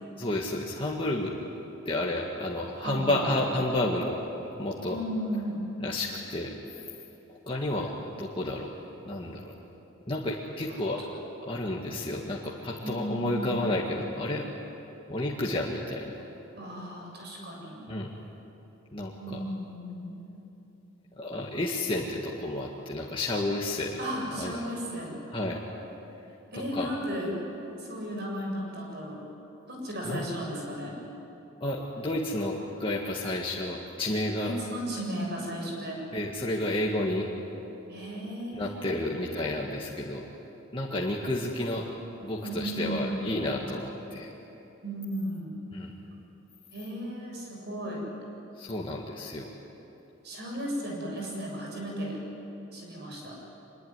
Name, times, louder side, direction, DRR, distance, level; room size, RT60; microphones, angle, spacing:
voice 1, 0.2-1.3 1.9-5.0 5.8-6.5 7.3-8.7 9.0-9.5 10.1-11.0 11.4-14.5 15.1-16.1 17.9-18.1 18.9-19.4 21.2-24.0 24.4-24.7 25.3-25.6 26.5-26.9 30.1-30.2 31.6-34.5 36.1-37.3 38.5-40.2 40.7-41.9 42.2-44.3 45.7-45.9 48.6-49.5, left 1 dB, 25° left, -3 dB, 1.9 m, -31 dB
voice 2, 2.8-3.5 4.9-5.7 10.7-10.8 12.8-13.7 16.6-17.8 19.2-20.2 24.0-25.2 26.5-27.4 27.8-29.2 29.7-31.0 34.4-36.0 37.9-39.0 42.4-43.5 44.8-45.6 46.7-48.0 50.2-52.2 52.7-53.4, equal, 55° right, -1 dB, 7.6 m, -35 dB
24.0 x 22.0 x 9.7 m, 3.0 s
head